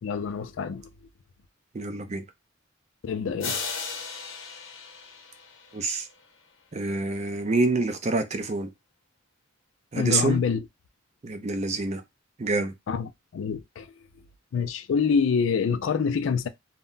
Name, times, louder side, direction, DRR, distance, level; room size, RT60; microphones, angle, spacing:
voice 1, 0.0-0.9 3.0-3.6 10.0-10.7 12.9-13.9 14.5-16.5, left 6 dB, 70° left, 0.3 m, -26 dB
voice 2, 1.7-2.2 5.7-6.1 6.7-8.7 9.9-10.4 11.2-12.0 12.4-12.7, right 3 dB, 35° right, 0.4 m, -27 dB
sound 1, 3.4-6.1, left 5 dB, 90° left, 0.8 m, -36 dB
2.1 x 2.1 x 3.7 m
head